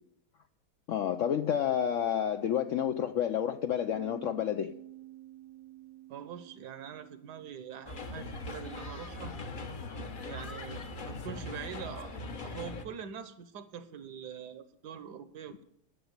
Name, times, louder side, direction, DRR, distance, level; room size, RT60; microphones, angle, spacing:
voice 1, 0.9-4.7, left 9 dB, 70° left, 0.7 m, -30 dB
Bass guitar, 3.9-10.2, right 15 dB, 35° right, 0.6 m, -53 dB
voice 2, 6.1-9.3 10.2-12.1 12.4-15.6, right 8 dB, 75° right, 1.4 m, -44 dB
sound 1, 7.9-12.8, left 2 dB, 40° left, 0.8 m, -40 dB
10.0 x 6.8 x 8.0 m
omnidirectional pair, 1.8 m